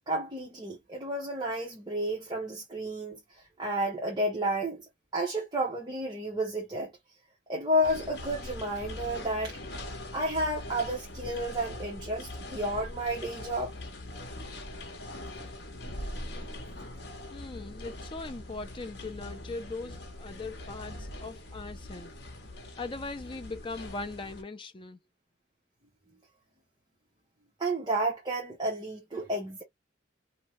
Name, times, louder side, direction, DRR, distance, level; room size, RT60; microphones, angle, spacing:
voice 1, 0.1-3.2 3.6-4.8 5.1-6.9 7.5-9.6 10.1-13.7 27.6-29.6, right 1 dB, 25° right, 0.8 m, -31 dB
sound 1, 7.8-24.4, left 1 dB, 60° left, 0.9 m, -42 dB
voice 2, 17.3-22.1 22.8-25.0, left 3 dB, 25° left, 0.4 m, -40 dB
2.7 x 2.2 x 3.0 m
head